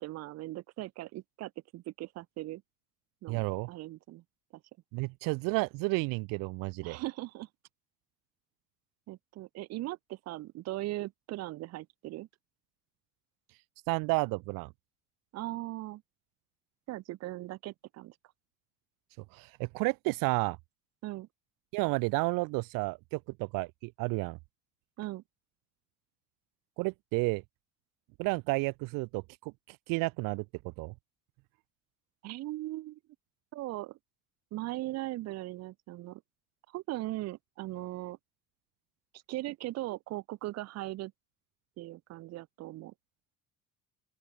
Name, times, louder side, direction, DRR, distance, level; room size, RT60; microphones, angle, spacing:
voice 1, 0.0-2.6 3.2-3.4 3.7-4.2 6.8-7.5 9.1-12.3 15.3-16.0 16.9-18.1 21.0-21.3 25.0-25.2 32.2-33.0 33.5-34.0 34.5-36.2 36.7-38.2 39.3-41.1 41.8-42.9, right 17 dB, 55° right, 0.7 m, -39 dB
voice 2, 3.3-3.7 4.9-7.0 13.9-14.7 19.3-20.6 21.7-24.4 26.8-27.4 28.2-30.9, right 26 dB, 90° right, 0.5 m, -31 dB
open air
cardioid pair, 160°, 32 cm